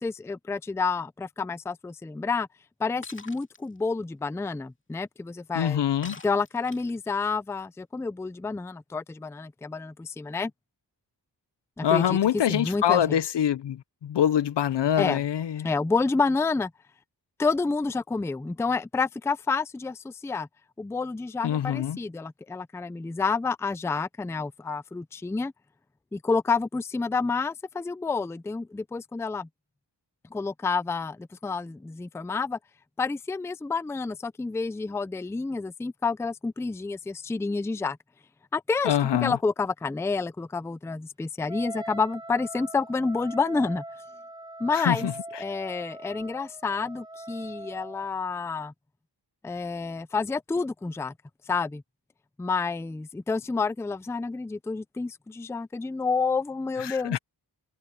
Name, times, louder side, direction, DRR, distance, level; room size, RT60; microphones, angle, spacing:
voice 1, 0.0-2.5 2.8-5.8 6.2-10.5 11.8-13.2 15.0-15.2 15.6-16.7 17.4-20.5 20.8-25.5 26.1-29.5 30.3-32.6 33.0-38.0 38.5-43.8 44.6-45.1 45.4-48.7 49.4-51.1 51.5-51.8 52.4-57.2, left 4 dB, 5° left, 0.4 m, -29 dB
Shatter, 3.0-3.6 6.0-7.1, left 3 dB, 25° left, 2.5 m, -44 dB
voice 2, 5.5-6.2 11.8-15.7 21.4-22.0 38.8-39.4 44.7-45.1 56.8-57.2, left 10 dB, 75° left, 0.7 m, -25 dB
Wind instrument woodwind instrument, 41.5-48.1, right 1 dB, 10° right, 5.9 m, -41 dB
wide cardioid pair, 150°, 42 cm